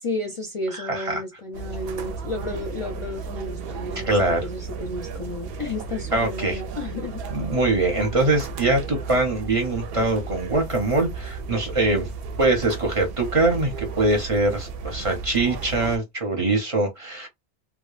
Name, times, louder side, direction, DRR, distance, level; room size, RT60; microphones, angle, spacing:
voice 1, 0.0-7.2, left 2 dB, 40° left, 0.5 m, -32 dB
voice 2, 0.9-1.2 4.0-4.4 6.1-6.6 7.3-12.1 12.4-17.3, right 2 dB, 35° right, 0.7 m, -23 dB
sound 1, 1.5-16.0, right 4 dB, 70° right, 0.8 m, -34 dB
2.2 x 2.0 x 3.1 m
omnidirectional pair, 1.1 m